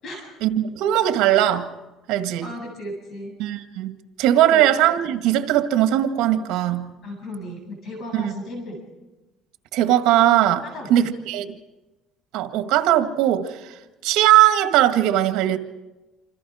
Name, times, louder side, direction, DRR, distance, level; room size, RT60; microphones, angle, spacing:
voice 1, 0.4-1.7 2.1-2.5 3.4-3.9 4.2-6.9 8.1-8.3 9.7-10.6 10.9-11.5 12.3-13.7 14.0-15.6, right 12 dB, 80° right, 1.8 m, -19 dB
voice 2, 2.4-3.4 4.5-4.6 7.0-8.8 10.6-11.1, left 1 dB, 45° left, 7.7 m, -35 dB
27.5 x 26.5 x 5.0 m
cardioid pair, 150°, 0 cm